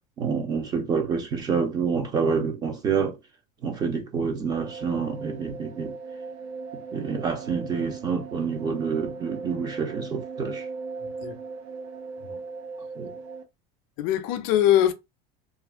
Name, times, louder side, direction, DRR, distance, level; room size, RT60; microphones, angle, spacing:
voice 1, 0.2-3.2 3.6-5.9 6.9-10.7 13.0-13.1, right 5 dB, 20° right, 0.4 m, -27 dB
sound 1, 4.5-13.4, right 5 dB, 80° right, 0.8 m, -38 dB
voice 2, 11.0-11.4 12.3-12.4 14.0-14.9, left 12 dB, 50° left, 0.4 m, -22 dB
2.4 x 2.1 x 3.4 m
cardioid pair, 175°, 20 cm